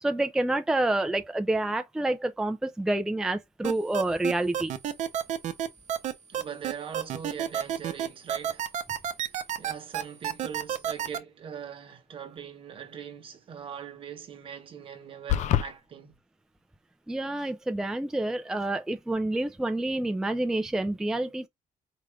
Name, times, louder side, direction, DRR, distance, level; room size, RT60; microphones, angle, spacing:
voice 1, 0.0-4.7 17.1-21.5, right 2 dB, 5° right, 0.4 m, -28 dB
sound 1, 3.6-11.2, right 9 dB, 65° right, 0.7 m, -29 dB
voice 2, 6.3-8.7 9.3-16.2, right 7 dB, 45° right, 1.0 m, -41 dB
sound 2, 15.3-15.7, left 11 dB, 65° left, 0.4 m, -24 dB
4.8 x 2.4 x 3.2 m
cardioid pair, 160°, 13 cm